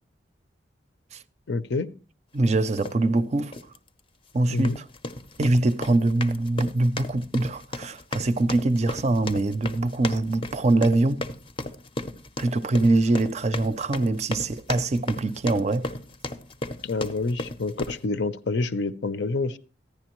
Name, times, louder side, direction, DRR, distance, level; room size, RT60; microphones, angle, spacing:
voice 1, 1.5-1.9 4.5-4.8 16.8-19.6, left 3 dB, 70° left, 0.6 m, -27 dB
voice 2, 2.3-3.6 4.3-4.8 5.4-11.3 12.4-15.9, right 2 dB, 40° right, 0.5 m, -23 dB
sound 1, 2.8-3.0 3.5-3.8 4.5-18.0, left 2 dB, 30° left, 0.5 m, -35 dB
14.5 x 10.5 x 3.0 m
head